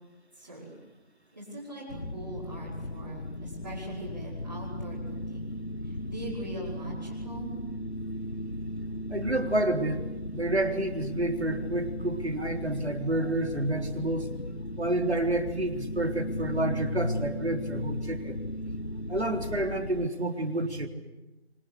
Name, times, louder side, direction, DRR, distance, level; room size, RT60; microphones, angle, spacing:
voice 1, 0.3-0.8 1.3-5.5 5.8-7.6, right 1 dB, 20° right, -12 dB, 5.5 m, -41 dB
sound 1, 1.9-20.1, left 1 dB, 60° left, 1.4 m, -36 dB
voice 2, 9.1-10.0 10.3-14.3 14.8-18.4 19.1-20.9, right 1 dB, 75° right, 4 dB, 3.9 m, -29 dB
26.5 x 25.0 x 8.2 m, 1.0 s
figure-of-eight pair, 175°, 33 cm